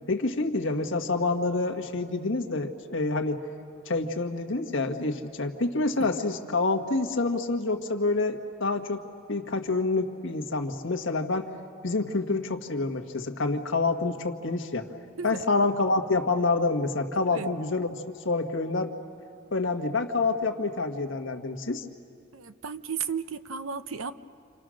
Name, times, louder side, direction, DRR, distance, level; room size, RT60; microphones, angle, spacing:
voice 1, 0.1-3.4 3.8-9.0 9.3-11.5 11.8-14.9 15.2-17.9 18.2-18.9 19.5-21.9, left 3 dB, 65° left, 4 dB, 1.6 m, -27 dB
voice 2, 15.1-15.5 17.3-17.5 22.3-24.1, right 6 dB, 90° right, 12 dB, 0.8 m, -34 dB
29.0 x 27.5 x 6.4 m, 2.4 s
head